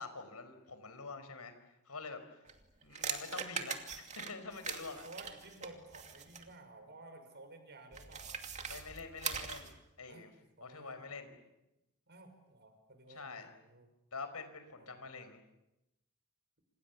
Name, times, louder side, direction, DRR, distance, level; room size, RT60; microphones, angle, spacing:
voice 1, 0.0-1.5 1.9-2.2 2.8-5.1 8.7-9.7 10.0-10.3 10.6-11.3 13.1-13.5 14.1-15.4, left 4 dB, 85° left, 9 dB, 5.0 m, -46 dB
sound 1, 2.5-6.5 7.9-9.8, right 6 dB, 30° right, 2.6 m, -42 dB
voice 2, 5.0-8.9 10.1-10.3 10.6-11.1 12.1-13.9 14.8-15.0, right 2 dB, 50° right, 7 dB, 6.2 m, -54 dB
28.5 x 27.5 x 7.3 m, 0.93 s
head